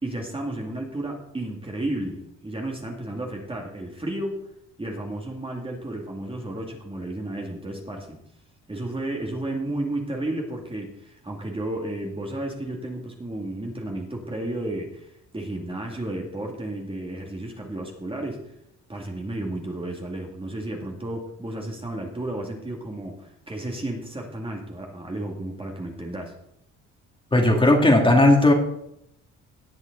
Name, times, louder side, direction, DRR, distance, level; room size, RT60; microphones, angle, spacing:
voice 1, 0.0-4.4 4.8-8.2 8.7-18.4 18.9-26.4, right 1 dB, 20° right, 0 dB, 2.3 m, -32 dB
voice 2, 27.3-28.5, left 1 dB, 15° left, 1 dB, 2.4 m, -16 dB
18.5 x 6.3 x 4.0 m, 0.77 s
cardioid pair, 90°, 30 cm